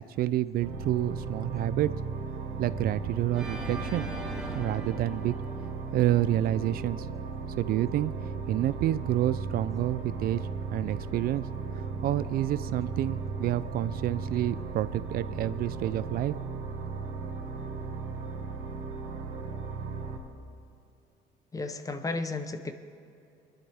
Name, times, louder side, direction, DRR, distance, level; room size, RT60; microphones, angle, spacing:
voice 1, 0.0-1.9 2.6-4.1 4.5-5.3 5.9-7.1 7.6-8.1 8.5-10.4 10.7-11.5 12.0-16.3, right 13 dB, 60° right, 15 dB, 0.4 m, -28 dB
sound 1, 0.6-20.2, right 4 dB, 85° right, 1.7 m, -36 dB
Organ, 3.3-6.5, equal, 5° right, 2.1 m, -40 dB
voice 2, 21.5-22.7, left 3 dB, 20° left, 8 dB, 0.8 m, -33 dB
21.5 x 11.0 x 3.5 m, 2.7 s
cardioid pair, 110°, 17 cm